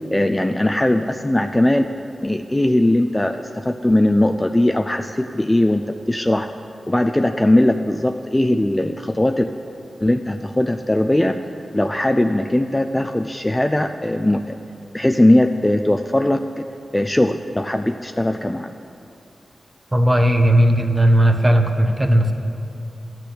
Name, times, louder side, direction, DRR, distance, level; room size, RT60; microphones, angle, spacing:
voice 1, 0.1-1.9 2.2-6.5 6.9-9.5 10.0-11.4 11.7-14.6 14.9-16.6 16.9-18.7, left 1 dB, 15° left, 6 dB, 0.4 m, -19 dB
voice 2, 19.9-22.3, right 1 dB, 20° right, 6 dB, 1.0 m, -16 dB
14.0 x 6.2 x 8.4 m, 2.7 s
wide cardioid pair, 100°, 0 cm